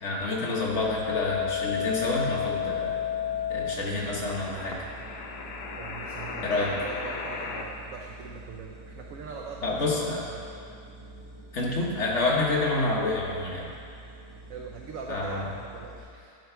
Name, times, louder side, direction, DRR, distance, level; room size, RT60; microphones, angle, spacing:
voice 1, 0.0-2.9 3.5-4.8 6.4-6.7 9.6-10.2 11.5-13.7 15.1-15.4, left 2 dB, 50° left, -3 dB, 1.2 m, -28 dB
sound 1, 0.5-16.0, right 2 dB, 90° right, 2.2 m, -47 dB
sound 2, 1.0-7.6, left 8 dB, 70° left, 1.2 m, -33 dB
voice 2, 5.8-10.5 14.5-16.4, right 5 dB, 65° right, 0 dB, 0.9 m, -41 dB
11.0 x 5.2 x 4.5 m, 2.4 s
omnidirectional pair, 1.8 m